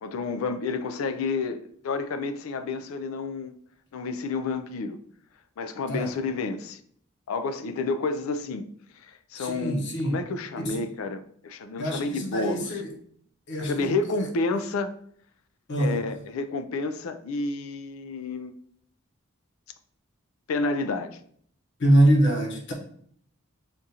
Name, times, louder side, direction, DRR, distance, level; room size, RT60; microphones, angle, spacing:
voice 1, 0.0-3.6 3.9-5.0 5.6-6.8 7.3-8.7 9.0-12.7 13.6-14.9 15.8-18.5 20.5-21.2, left 3 dB, 90° left, 0.4 m, -30 dB
voice 2, 9.4-10.2 10.6-10.9 11.8-13.0 13.5-14.0 15.7-16.2 21.8-22.7, right 1 dB, 60° left, 0.9 m, -24 dB
5.2 x 2.4 x 2.7 m
head